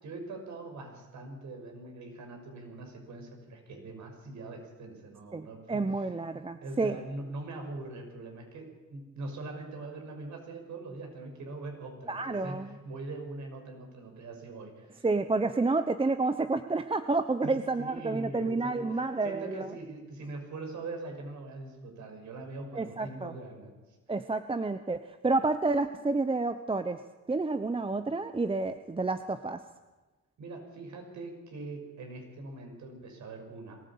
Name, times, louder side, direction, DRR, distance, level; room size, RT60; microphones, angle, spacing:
voice 1, 0.0-15.0 17.4-23.7 30.4-33.8, right 2 dB, 70° right, 3 dB, 5.9 m, -42 dB
voice 2, 5.3-7.0 12.1-12.7 15.0-19.7 22.7-23.3 24.1-27.0 27.3-29.6, right 3 dB, 20° right, 10 dB, 0.9 m, -29 dB
22.0 x 15.0 x 8.6 m, 1.2 s
cardioid pair, 90°, 30 cm